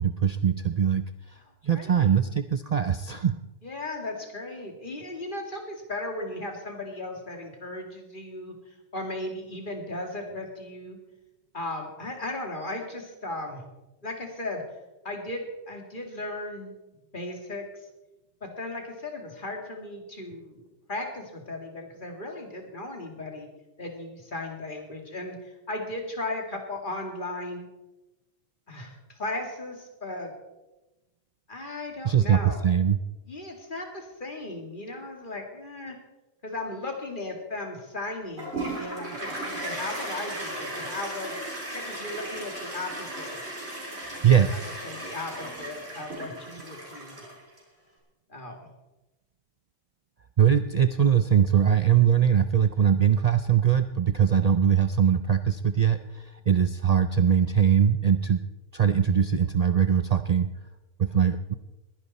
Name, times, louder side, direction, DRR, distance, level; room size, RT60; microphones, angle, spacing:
voice 1, 0.0-1.4 1.6-3.4 32.0-33.0 44.2-44.7 50.4-58.4 58.7-60.5 61.0-61.5, right 8 dB, 75° right, 10 dB, 0.3 m, -22 dB
voice 2, 1.7-2.2 3.6-11.0 11.5-13.6 14.0-14.6 15.0-16.7 17.1-17.7 18.4-23.5 23.8-27.7 28.7-30.3 31.5-32.7 33.3-36.0 36.4-41.4 41.7-43.4 44.1-47.2 48.3-48.7, left 2 dB, 35° left, 3 dB, 2.5 m, -36 dB
Toilet flush, 38.4-47.6, right 1 dB, 50° right, 3.7 m, -36 dB
21.0 x 10.5 x 4.2 m, 1.0 s
omnidirectional pair, 1.4 m